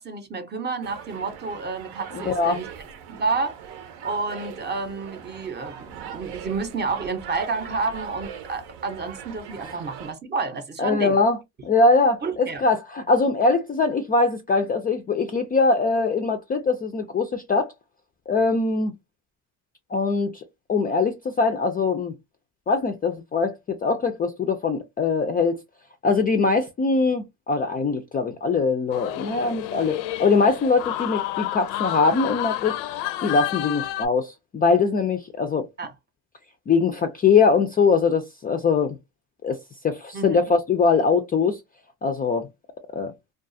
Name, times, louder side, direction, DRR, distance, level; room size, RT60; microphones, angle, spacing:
voice 1, 0.0-2.7 3.1-3.7 4.0-11.2 12.2-12.6 35.8-35.9 40.1-40.5, right 4 dB, 25° right, 0.6 m, -30 dB
sound 1, 0.8-10.1, right 8 dB, 70° right, 0.7 m, -40 dB
voice 2, 2.1-2.6 10.8-11.4 11.6-17.7 18.3-19.0 19.9-20.4 20.7-22.1 22.7-25.6 26.0-35.7 36.7-39.0 39.4-41.6 42.0-42.5 42.9-43.1, left 4 dB, 25° left, 0.3 m, -22 dB
sound 2, 28.9-34.1, left 14 dB, 75° left, 0.5 m, -30 dB
2.4 x 2.4 x 2.5 m
supercardioid pair, 100°, 41 cm